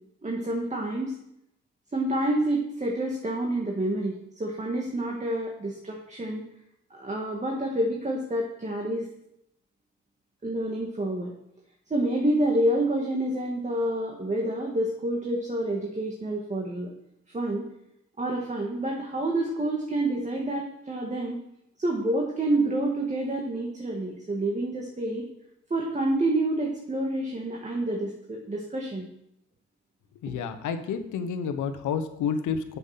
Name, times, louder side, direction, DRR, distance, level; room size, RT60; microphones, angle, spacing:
voice 1, 0.2-1.1 1.9-6.4 6.9-9.1 10.4-11.3 11.9-16.9 17.3-17.7 18.2-21.4 21.8-25.3 25.7-29.1 30.3-30.4, right 1 dB, 25° right, 0 dB, 2.0 m, -28 dB
voice 2, 30.2-32.8, left 6 dB, 80° left, 8 dB, 1.2 m, -30 dB
7.9 x 7.2 x 5.8 m, 0.78 s
cardioid pair, 90°, 30 cm